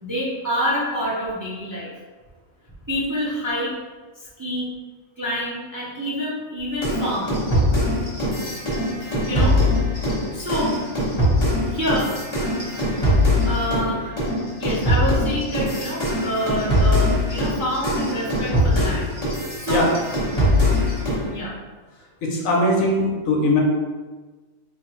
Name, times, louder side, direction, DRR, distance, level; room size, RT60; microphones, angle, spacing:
voice 1, 0.0-1.9 2.9-3.7 4.4-4.7 5.2-7.4 9.3-9.6 10.3-10.8 11.7-12.1 13.4-14.2 14.6-19.1 19.4-19.9 21.3-21.5, equal, 25° right, -7 dB, 0.4 m, -27 dB
sound 1, 6.8-13.9 14.2-21.3, left 1 dB, 30° left, 1.3 m, -21 dB
voice 2, 22.2-23.6, left 1 dB, 75° left, -1 dB, 1.2 m, -20 dB
4.1 x 2.7 x 3.1 m, 1.3 s
omnidirectional pair, 1.4 m